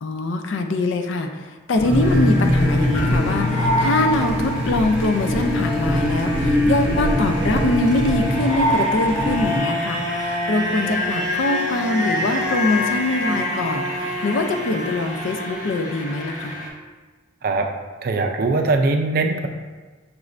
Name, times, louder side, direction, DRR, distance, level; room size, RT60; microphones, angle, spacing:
voice 1, 0.0-16.5, left 2 dB, 65° left, 5 dB, 0.4 m, -23 dB
sound 1, 1.7-9.6, equal, 30° right, 0.9 m, -23 dB
sound 2, 1.8-8.7 9.0-9.5 9.9-10.0, left 2 dB, 85° left, 1.2 m, -25 dB
sound 3, 2.0-16.7, left 1 dB, 40° left, 0.7 m, -28 dB
voice 2, 18.0-19.5, right 3 dB, 45° right, 4 dB, 0.4 m, -21 dB
6.0 x 2.5 x 3.1 m, 1.4 s
head